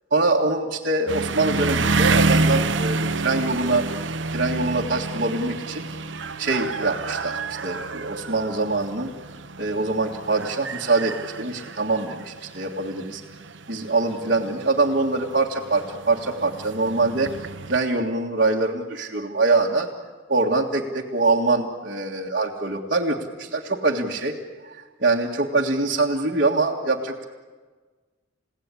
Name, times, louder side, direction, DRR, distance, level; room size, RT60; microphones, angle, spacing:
voice 1, 0.1-3.8 4.3-5.9 6.4-9.1 9.6-13.2 13.7-17.3 17.7-19.9 20.3-24.3 24.6-27.2, right 3 dB, 50° right, -4 dB, 1.9 m, -24 dB
sound 1, 1.1-17.8, right 3 dB, 70° right, 1.1 m, -28 dB
30.0 x 17.0 x 9.9 m, 1.4 s
head